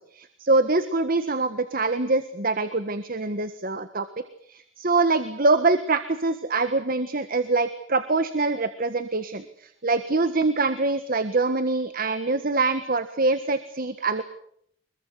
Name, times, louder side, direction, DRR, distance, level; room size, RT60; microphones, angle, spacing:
voice 1, 0.1-4.0 4.5-14.2, right 3 dB, 50° right, 11 dB, 1.6 m, -24 dB
25.5 x 22.5 x 8.2 m, 0.66 s
head